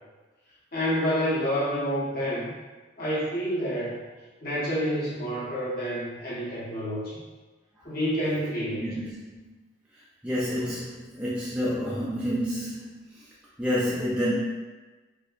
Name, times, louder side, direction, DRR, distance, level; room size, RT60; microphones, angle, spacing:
voice 1, 0.7-2.5 3.0-4.0 4.4-7.2 7.8-8.8, equal, 45° left, -9 dB, 1.2 m, -28 dB
voice 2, 8.7-9.6 10.2-13.2 13.6-14.3, equal, 5° right, -8 dB, 0.4 m, -29 dB
4.2 x 2.8 x 2.5 m, 1.2 s
head